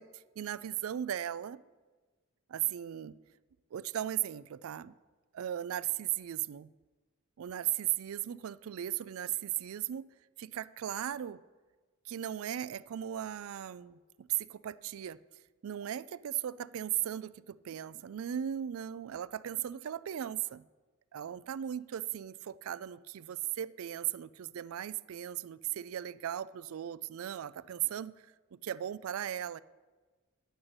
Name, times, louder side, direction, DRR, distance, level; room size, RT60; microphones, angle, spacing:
voice 1, 0.0-1.6 2.5-3.1 3.7-4.9 5.3-6.7 7.4-10.1 10.4-11.4 12.1-15.2 15.6-20.6 21.1-28.1 28.5-29.6, right 11 dB, 75° right, 18 dB, 0.4 m, -37 dB
10.0 x 6.5 x 8.8 m, 1.3 s
head